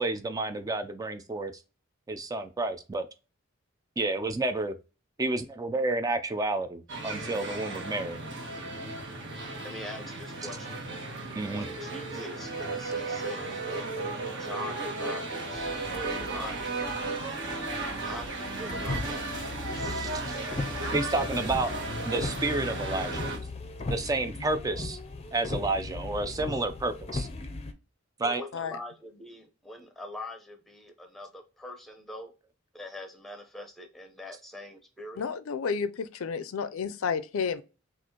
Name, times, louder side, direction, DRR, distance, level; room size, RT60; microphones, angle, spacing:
voice 1, 0.0-1.5 2.1-3.1 4.0-4.7 5.2-8.2 11.4-11.7 19.0-19.1 19.8-20.4 20.9-21.7 22.0-23.3 23.9-25.0 25.3-27.3 28.2-28.4, right 2 dB, 15° right, 0.3 m, -30 dB
sound 1, 6.9-23.4, right 2 dB, 60° right, 1.4 m, -35 dB
voice 2, 9.6-10.8 11.5-13.9 14.4-16.8 18.0-19.3 28.2-32.3 32.7-35.2, left 1 dB, ahead, 0.8 m, -43 dB
sound 2, 15.5-27.7, left 3 dB, 30° left, 0.5 m, -38 dB
voice 3, 35.2-37.6, left 6 dB, 80° left, 0.4 m, -31 dB
6.0 x 2.5 x 2.9 m
head